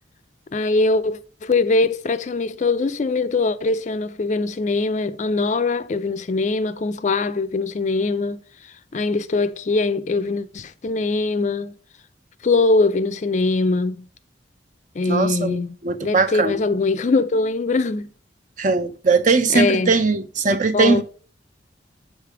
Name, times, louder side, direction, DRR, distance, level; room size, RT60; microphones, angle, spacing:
voice 1, 0.5-8.4 8.9-11.7 12.4-14.1 15.0-15.7 16.0-18.1 19.5-19.9 20.7-21.0, left 3 dB, 40° left, 0.4 m, -22 dB
voice 2, 15.1-16.6 18.6-21.0, right 4 dB, 45° right, 0.6 m, -20 dB
7.4 x 3.3 x 4.6 m
head